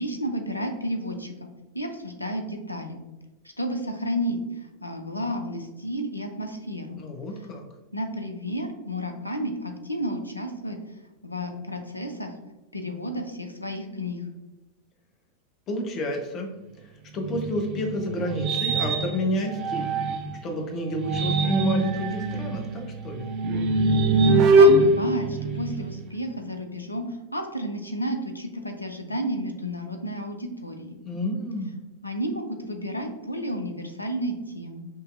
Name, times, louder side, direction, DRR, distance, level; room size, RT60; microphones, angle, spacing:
voice 1, 0.0-1.5 1.7-3.0 3.6-7.0 7.9-10.8 11.2-12.3 12.7-14.2 24.3-31.0 32.0-34.9, equal, 85° left, 5 dB, 0.5 m, -32 dB
voice 2, 7.0-7.6 15.7-16.5 17.1-19.9 20.4-23.3 31.0-31.7, left 1 dB, 30° left, 2 dB, 0.8 m, -30 dB
sound 1, 17.2-20.4 20.9-26.1, right 2 dB, 40° right, 0.4 m, -22 dB
5.3 x 2.8 x 2.5 m, 1.1 s
figure-of-eight pair, 90°, 0 cm